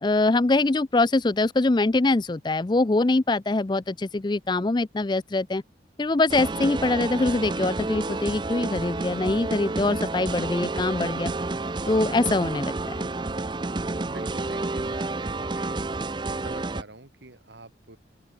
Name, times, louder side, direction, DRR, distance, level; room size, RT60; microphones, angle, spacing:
voice 1, 0.0-5.6 6.0-11.3 11.9-12.7, left 2 dB, 25° left, 0.4 m, -23 dB
sound 1, 6.3-16.8, right 2 dB, 25° right, 0.6 m, -30 dB
voice 2, 14.1-15.8 16.4-18.0, right 2 dB, 70° right, 2.4 m, -46 dB
open air
head